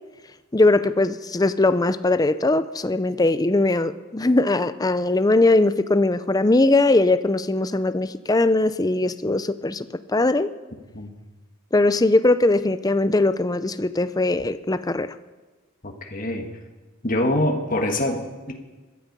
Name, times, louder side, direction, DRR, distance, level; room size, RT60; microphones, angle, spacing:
voice 1, 0.5-10.5 11.7-15.1, left 2 dB, 15° left, 13 dB, 0.5 m, -20 dB
voice 2, 15.8-16.5 17.0-18.5, left 1 dB, 40° left, 3 dB, 1.6 m, -25 dB
20.5 x 12.5 x 5.4 m, 1.3 s
head